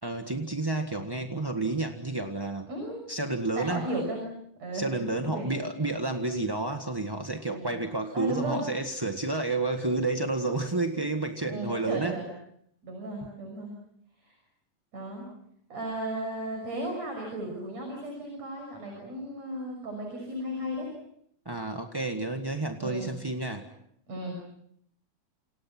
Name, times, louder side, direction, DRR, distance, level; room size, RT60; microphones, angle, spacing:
voice 1, 0.0-2.7 3.1-3.9 4.7-12.2 21.4-23.7, right 2 dB, 15° right, 4 dB, 0.9 m, -30 dB
voice 2, 2.7-3.0 3.6-4.3 4.6-4.9 5.2-5.5 7.5-7.8 8.1-8.6 11.5-12.3 12.8-13.7 14.2-14.4 14.9-15.3 15.7-20.9 22.8-23.3 24.1-24.4, right 1 dB, 65° right, 2 dB, 7.2 m, -35 dB
29.5 x 28.5 x 6.0 m, 0.71 s
omnidirectional pair, 3.3 m